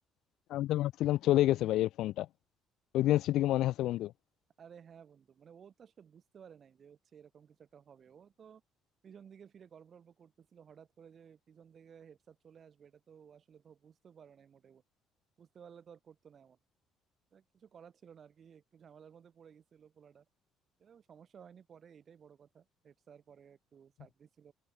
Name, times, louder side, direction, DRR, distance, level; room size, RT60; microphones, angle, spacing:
voice 1, 0.5-2.3 2.9-4.1, left 14 dB, 70° left, 0.4 m, -28 dB
voice 2, 4.6-8.6 9.0-14.8 15.4-16.6 17.3-20.3 20.8-24.5, right 7 dB, 35° right, 3.2 m, -57 dB
cardioid pair, 165°, 0 cm